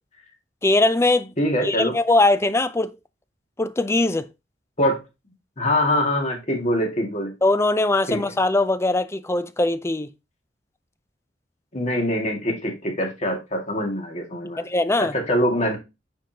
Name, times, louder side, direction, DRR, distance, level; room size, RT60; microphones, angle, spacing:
voice 1, 0.6-1.3 1.6-2.9 3.6-4.3 7.4-10.1 14.6-15.1, left 2 dB, 15° left, 0.5 m, -21 dB
voice 2, 1.4-1.9 4.8-5.0 5.6-7.3 8.1-8.2 11.7-14.7 15.0-15.8, equal, 40° left, 2.1 m, -24 dB
8.9 x 5.2 x 2.9 m
head